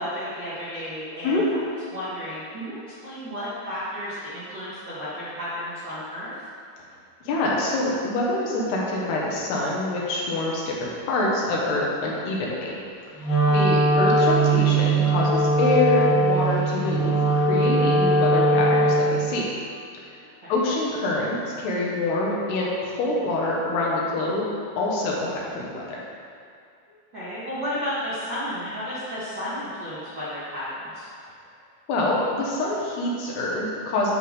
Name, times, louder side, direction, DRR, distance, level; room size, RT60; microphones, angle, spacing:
voice 1, 0.0-6.3 13.4-13.7 20.4-20.5 26.9-31.1, equal, 90° right, -11 dB, 1.0 m, -33 dB
voice 2, 7.2-12.7 13.5-19.5 20.5-24.5 24.8-26.0 31.9-34.1, left 2 dB, 70° left, -4 dB, 2.9 m, -25 dB
Wind instrument woodwind instrument, 13.2-19.2, right 2 dB, 55° left, 1.5 m, -20 dB
10.5 x 3.7 x 6.5 m, 2.4 s
omnidirectional pair, 5.3 m